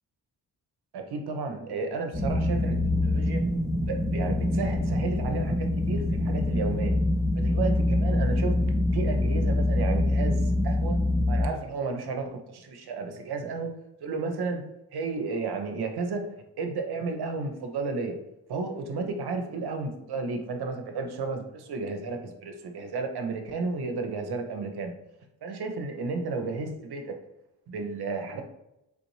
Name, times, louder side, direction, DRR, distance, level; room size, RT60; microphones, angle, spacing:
voice 1, 0.9-3.4 3.8-7.0 7.3-8.6 8.9-11.0 11.3-13.7 14.0-14.6 14.9-16.3 16.6-18.2 18.5-24.9 25.4-27.2 27.7-28.4, right 4 dB, 60° right, 5 dB, 0.7 m, -32 dB
sound 1, 2.1-11.4, left 1 dB, 5° right, 0.6 m, -25 dB
3.5 x 2.5 x 3.1 m, 0.88 s
supercardioid pair, 45°, 44 cm